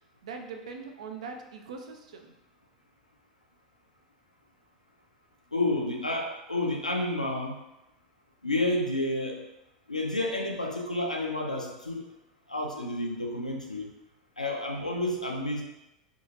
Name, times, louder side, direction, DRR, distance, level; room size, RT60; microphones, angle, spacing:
voice 1, 0.2-2.4, right 5 dB, 65° right, 4 dB, 0.3 m, -41 dB
voice 2, 5.5-7.6 8.4-9.4 9.9-12.1 12.5-13.9 14.4-15.6, left 1 dB, 90° left, 2 dB, 0.4 m, -30 dB
2.7 x 2.4 x 2.4 m, 0.91 s
figure-of-eight pair, 80°, 4 cm